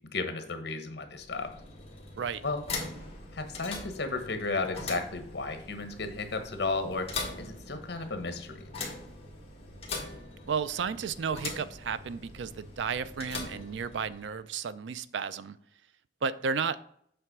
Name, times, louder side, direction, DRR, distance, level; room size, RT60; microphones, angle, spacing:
voice 1, 0.1-1.5 2.4-2.6 3.3-7.1 7.4-8.7, left 3 dB, 65° left, 7 dB, 1.1 m, -33 dB
sound 1, 1.1-14.4, left 3 dB, 35° left, 1.7 m, -42 dB
voice 2, 10.4-15.6 16.2-16.8, right 6 dB, 80° right, 15 dB, 0.4 m, -33 dB
7.8 x 3.4 x 5.9 m, 0.68 s
head